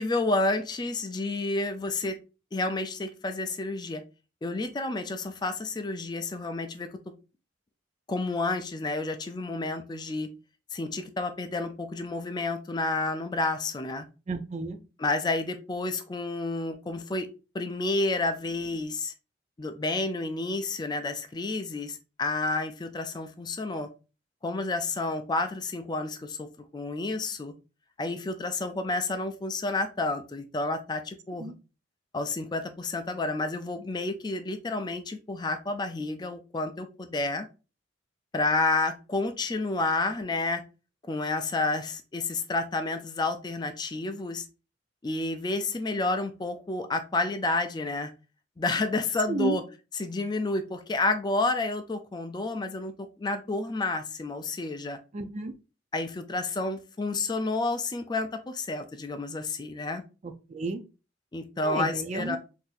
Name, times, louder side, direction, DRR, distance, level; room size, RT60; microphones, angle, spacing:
voice 1, 0.0-2.2 2.5-4.0 4.4-6.9 8.1-10.3 10.7-14.1 15.0-17.3 17.5-19.1 19.6-23.9 24.4-26.5 26.7-27.5 28.0-31.5 32.1-37.5 38.3-40.6 41.1-44.5 45.0-48.1 48.6-49.6 49.9-52.9 53.2-55.0 55.9-60.0 61.3-62.4, left 2 dB, 25° left, 8 dB, 0.4 m, -30 dB
voice 2, 14.3-14.8 31.4-31.5 49.3-49.6 55.1-55.5 60.2-60.8 61.6-62.4, right 3 dB, 40° right, 7 dB, 0.4 m, -32 dB
3.9 x 2.7 x 2.5 m, 0.31 s
head